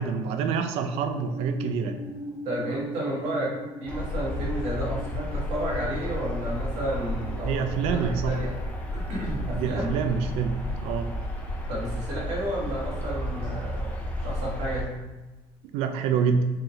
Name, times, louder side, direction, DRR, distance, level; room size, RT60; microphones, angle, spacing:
voice 1, 0.0-2.0 7.5-8.5 9.6-10.5 10.8-11.1 15.7-16.4, right 6 dB, 70° right, 7 dB, 0.4 m, -26 dB
sound 1, 0.8-10.0, left 1 dB, 70° left, 1.2 m, -41 dB
voice 2, 2.4-8.5 8.9-10.0 11.7-13.9 14.2-14.9, right 1 dB, 90° right, -4 dB, 1.3 m, -32 dB
sound 2, 3.9-14.8, left 1 dB, 15° left, 0.4 m, -32 dB
3.8 x 3.1 x 2.8 m, 1.2 s
cardioid pair, 165°, 11 cm